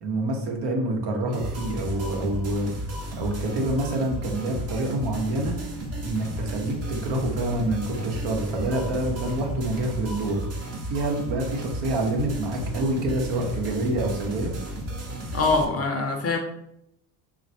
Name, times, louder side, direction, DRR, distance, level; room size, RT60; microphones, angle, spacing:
voice 1, 0.0-2.7 3.2-5.6 6.0-10.4 10.9-14.5, right 1 dB, 60° right, 1 dB, 0.9 m, -27 dB
sound 1, 1.3-15.6, right 1 dB, 35° right, 0.8 m, -34 dB
voice 2, 15.3-16.4, left 3 dB, 30° left, 4 dB, 0.6 m, -23 dB
3.1 x 2.4 x 2.7 m, 0.76 s
hypercardioid pair, 55°, 46 cm